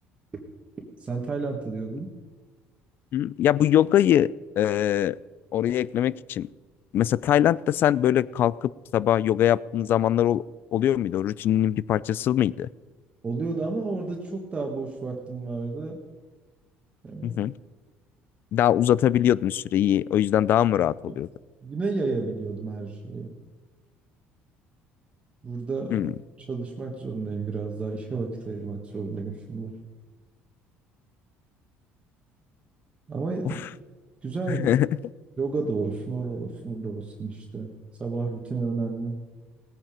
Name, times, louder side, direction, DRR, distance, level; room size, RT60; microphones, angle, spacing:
voice 1, 1.0-2.1 13.2-16.0 17.0-17.4 21.1-21.2 21.6-23.3 25.4-26.1 26.5-29.7 33.1-33.7 34.2-34.7 35.4-37.7 38.0-39.1, right 4 dB, 25° right, 0 dB, 1.6 m, -31 dB
voice 2, 3.1-5.2 5.5-6.5 6.9-10.4 10.7-12.7 17.2-17.5 18.5-21.3 25.9-26.1 33.4-33.6 34.5-34.9, left 11 dB, 50° left, 21 dB, 0.4 m, -22 dB
18.0 x 9.1 x 5.1 m, 1.3 s
cardioid pair, 120°, 5 cm